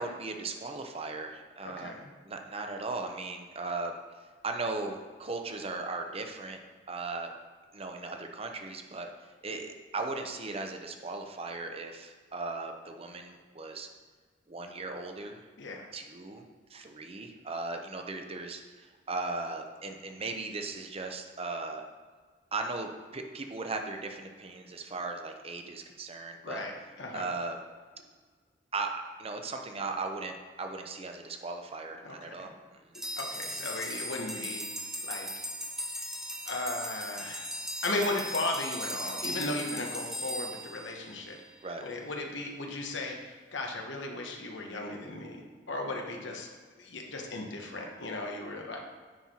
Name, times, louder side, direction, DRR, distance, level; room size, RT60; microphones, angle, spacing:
voice 1, 0.0-2.0 2.2-4.0 4.4-6.6 6.9-7.3 7.7-13.9 14.5-15.4 15.9-16.4 16.7-21.8 22.5-26.6 27.1-27.6 28.7-32.5 32.8-32.9 41.6-41.8, right 3 dB, 35° right, 4 dB, 0.8 m, -37 dB
voice 2, 1.6-2.1 15.6-15.9 26.4-27.3 32.0-32.5 33.2-34.6 35.0-35.5 36.5-37.5 37.8-41.4 41.8-46.5 46.8-48.8, left 2 dB, 90° left, 1 dB, 1.3 m, -36 dB
sound 1, 32.9-41.5, equal, 5° right, 0.6 m, -38 dB
9.4 x 4.5 x 4.4 m, 1.5 s
head